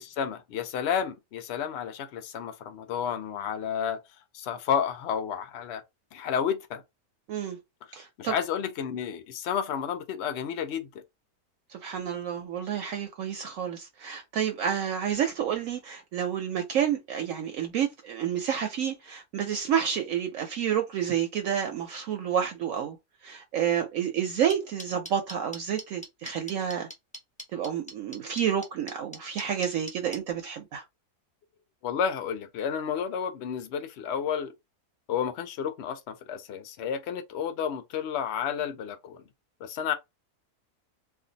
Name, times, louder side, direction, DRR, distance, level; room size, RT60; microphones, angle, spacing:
voice 1, 0.0-4.0 4.3-5.8 6.1-6.8 8.2-11.0 31.8-34.5 35.1-39.2 39.6-39.9, left 8 dB, 65° left, 0.7 m, -31 dB
voice 2, 7.9-8.3 11.7-23.0 23.2-26.9 27.5-30.8, right 9 dB, 70° right, 0.9 m, -29 dB
sound 1, 24.5-30.2, equal, 10° left, 0.4 m, -40 dB
2.5 x 2.3 x 3.8 m
omnidirectional pair, 1.6 m